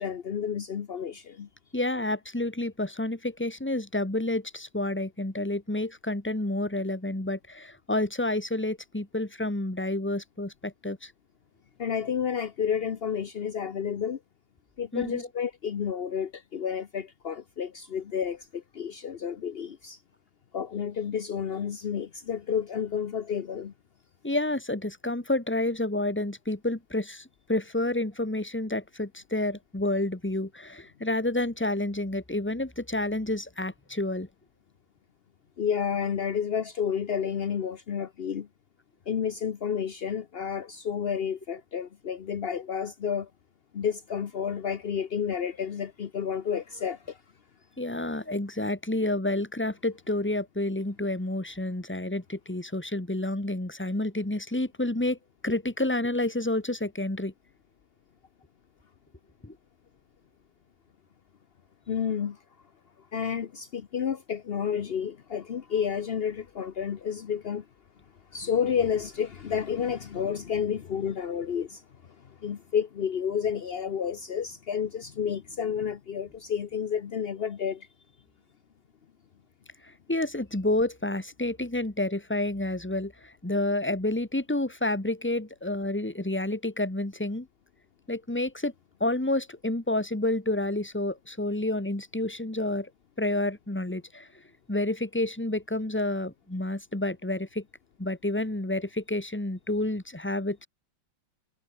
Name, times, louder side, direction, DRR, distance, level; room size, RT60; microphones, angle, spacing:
voice 1, 0.0-1.5 11.8-14.2 14.8-20.0 20.5-23.7 35.6-38.5 39.1-43.3 43.7-47.2 61.9-62.4 63.0-67.7 68.3-77.9, left 7 dB, 65° left, 0.6 m, -30 dB
voice 2, 1.7-11.1 14.9-15.3 24.2-34.3 47.8-55.2 55.4-57.3 59.4-59.5 79.8-87.5 88.1-88.7 89.0-92.9 93.2-94.3 94.7-97.6 98.0-100.7, left 1 dB, 5° left, 1.7 m, -29 dB
omnidirectional pair, 2.2 m